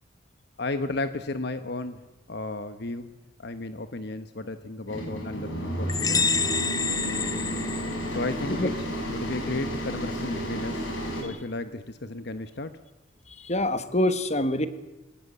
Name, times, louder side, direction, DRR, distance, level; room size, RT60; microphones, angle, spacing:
voice 1, 0.6-2.0 2.3-3.1 3.4-6.3 8.1-10.9 11.2-12.7, left 2 dB, 60° left, 10 dB, 1.1 m, -33 dB
sound 1, 4.9-11.2, equal, 80° left, 6.9 m, -32 dB
sound 2, 5.9-8.5, left 5 dB, 20° left, 0.7 m, -28 dB
voice 2, 13.3-14.7, left 1 dB, 35° left, 11 dB, 1.6 m, -25 dB
23.0 x 19.5 x 8.0 m, 1.1 s
head